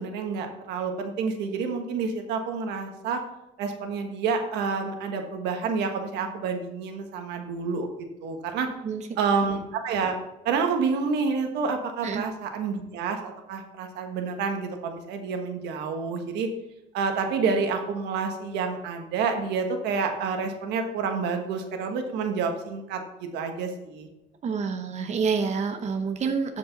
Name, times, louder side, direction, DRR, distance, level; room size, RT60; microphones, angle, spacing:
voice 1, 0.0-3.2 3.6-7.9 8.2-8.7 9.2-10.2 10.4-16.5 16.9-24.1, right 5 dB, 85° right, 5 dB, 1.4 m, -28 dB
voice 2, 24.4-26.6, right 5 dB, 40° right, 6 dB, 0.9 m, -28 dB
12.5 x 5.3 x 4.0 m, 0.93 s
cardioid pair, 110°, 17 cm